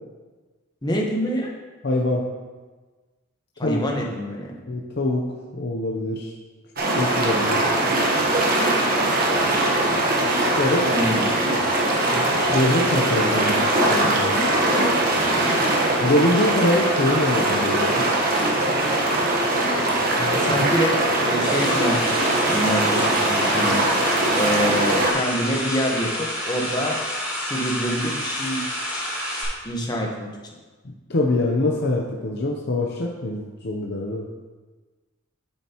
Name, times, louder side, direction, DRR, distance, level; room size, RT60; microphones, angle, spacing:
voice 1, 0.8-1.5 3.6-4.6 10.9-11.4 20.4-20.9 21.2-22.2 22.4-23.8 24.3-27.0 27.4-28.7 29.6-30.3, equal, 20° left, -1 dB, 1.1 m, -26 dB
voice 2, 1.8-2.3 3.6-3.8 4.7-6.3 6.8-7.7 10.6-10.9 12.1-14.4 16.0-18.1 20.2-20.7 30.8-34.2, left 1 dB, 50° left, -1 dB, 0.7 m, -24 dB
sound 1, 6.8-25.1, right 1 dB, 45° right, 1.2 m, -21 dB
sound 2, 21.4-29.4, equal, 5° right, 2.6 m, -29 dB
8.9 x 7.4 x 3.0 m, 1.3 s
head